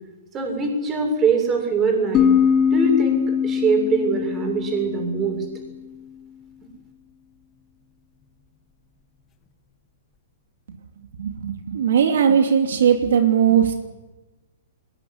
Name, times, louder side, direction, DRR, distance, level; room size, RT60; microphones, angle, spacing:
voice 1, 0.3-2.3 2.7-5.4, right 4 dB, 20° right, 3 dB, 6.9 m, -22 dB
sound 1, 2.1-5.7, left 7 dB, 20° left, 1.7 m, -22 dB
voice 2, 11.2-13.9, right 8 dB, 75° right, 5 dB, 2.8 m, -19 dB
21.5 x 20.0 x 9.7 m, 1.1 s
hypercardioid pair, 155°, 0 cm